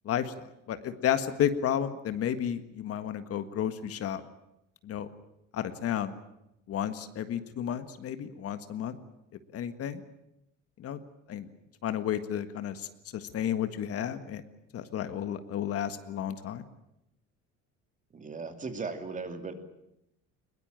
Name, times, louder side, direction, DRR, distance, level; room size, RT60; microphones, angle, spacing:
voice 1, 0.0-4.2 4.8-5.1 5.5-6.1 6.7-9.0 9.5-10.0 10.8-11.0 11.3-11.5 11.8-14.4 14.7-16.6, left 9 dB, 50° left, 10 dB, 1.7 m, -32 dB
voice 2, 18.1-19.5, right 4 dB, 25° right, 7 dB, 2.7 m, -37 dB
22.0 x 21.5 x 9.0 m, 0.84 s
cardioid pair, 130°, 29 cm